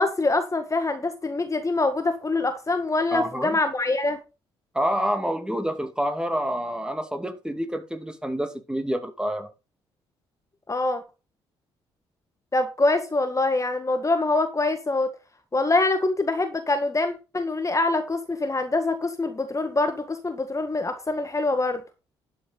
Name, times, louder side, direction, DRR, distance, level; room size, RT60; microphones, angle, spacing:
voice 1, 0.0-4.2 10.7-11.0 12.5-15.1 15.5-21.8, left 2 dB, 25° left, 1.8 m, -24 dB
voice 2, 3.1-3.5 4.7-9.5, equal, 5° right, 2.5 m, -28 dB
12.0 x 7.6 x 4.1 m
figure-of-eight pair, 45°, 13 cm